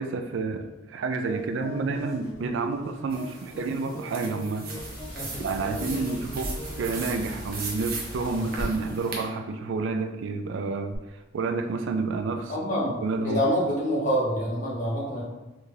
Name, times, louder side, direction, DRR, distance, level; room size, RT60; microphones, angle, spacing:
voice 1, 0.0-4.7 5.4-11.0 11.3-12.5 13.0-13.4, right 3 dB, 65° right, 6 dB, 0.3 m, -29 dB
sound 1, 1.2-6.9, right 1 dB, 15° left, 0.8 m, -41 dB
sound 2, 3.1-9.2, right 4 dB, 45° right, 0.7 m, -39 dB
sound 3, 4.8-8.6 10.9-11.0, equal, 65° left, 1.4 m, -39 dB
voice 2, 5.1-6.0 8.3-8.6 12.5-15.2, equal, 40° left, -7 dB, 1.2 m, -28 dB
3.9 x 3.3 x 2.7 m, 1.0 s
head